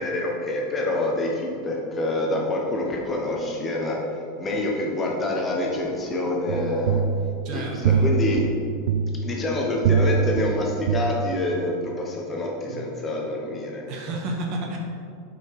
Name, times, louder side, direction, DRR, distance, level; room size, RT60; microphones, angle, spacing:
voice 1, 0.0-7.0 7.5-8.4 9.2-13.8, left 1 dB, 20° left, -1 dB, 1.0 m, -27 dB
sound 1, 6.5-11.7, right 5 dB, 85° right, 0.3 m, -24 dB
voice 2, 7.4-8.1 12.7-12.8 13.9-14.8, right 2 dB, 45° right, 0 dB, 1.4 m, -32 dB
8.0 x 5.6 x 4.8 m, 2.4 s
supercardioid pair, 155°, 0 cm